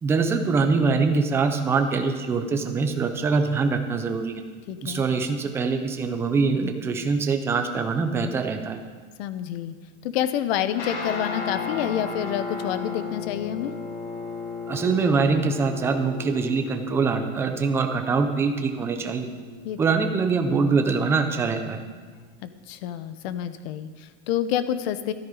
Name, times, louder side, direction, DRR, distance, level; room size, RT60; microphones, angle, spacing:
voice 1, 0.0-4.4 4.8-8.8 14.7-19.3 19.8-21.8, right 4 dB, 10° right, 6 dB, 0.3 m, -24 dB
voice 2, 4.7-5.1 9.2-9.7 10.0-13.7 19.6-19.8 22.4-25.1, left 10 dB, 55° left, 12 dB, 0.9 m, -28 dB
Guitar, 10.8-22.2, left 4 dB, 70° left, 3.0 m, -36 dB
13.5 x 13.0 x 4.9 m, 1.5 s
supercardioid pair, 170°, 36 cm